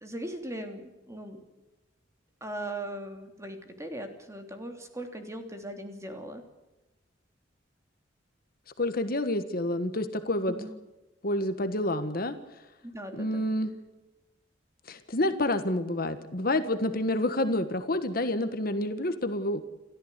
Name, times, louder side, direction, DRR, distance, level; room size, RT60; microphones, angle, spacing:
voice 1, 0.0-1.4 2.4-6.4 10.5-10.7 12.8-13.5, right 1 dB, 15° right, 5 dB, 2.9 m, -39 dB
voice 2, 8.8-10.5 11.2-12.4 13.1-13.7 14.9-19.6, left 1 dB, 50° left, 9 dB, 1.5 m, -28 dB
29.0 x 14.0 x 8.3 m, 1.1 s
head